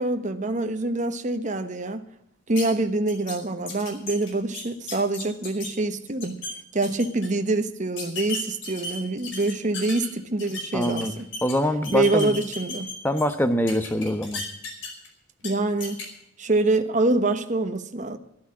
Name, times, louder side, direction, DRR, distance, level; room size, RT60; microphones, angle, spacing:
voice 1, 0.0-2.0 2.5-6.4 6.7-11.3 11.9-12.9 15.4-16.0 16.4-18.2, right 2 dB, 40° right, 1.1 m, -25 dB
sound 1, 2.6-2.7 3.1-3.4 3.7-5.7 6.1-6.5 6.8-7.3 8.0-10.1 10.4-11.5 11.8-13.3 13.7-15.1 15.4-15.5 15.8-16.0, left 3 dB, 75° left, 5.0 m, -34 dB
voice 2, 10.7-11.1 11.4-12.4 13.0-14.4, left 1 dB, 10° left, 1.2 m, -24 dB
12.5 x 12.0 x 7.5 m
head